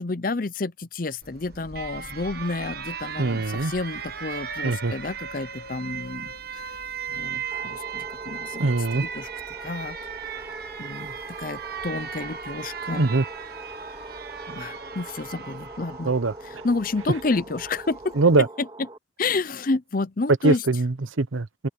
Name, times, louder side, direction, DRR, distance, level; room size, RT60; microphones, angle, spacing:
voice 1, 0.0-6.6 7.1-9.3 9.6-10.0 10.8-13.1 14.5-16.1 16.4-18.1 18.6-18.7 19.2-20.6, left 3 dB, 45° left, 0.6 m, -30 dB
Alarm, 1.2-18.4, right 7 dB, 50° right, 1.4 m, -37 dB
voice 2, 3.2-3.7 4.6-4.9 8.6-9.0 13.0-13.2 16.0-16.3 18.2-18.5 20.4-21.7, right 3 dB, 85° right, 0.9 m, -22 dB
sound 1, 3.3-14.8, left 2 dB, 80° left, 4.5 m, -51 dB
sound 2, 7.5-19.0, right 2 dB, 25° right, 2.6 m, -43 dB
open air
head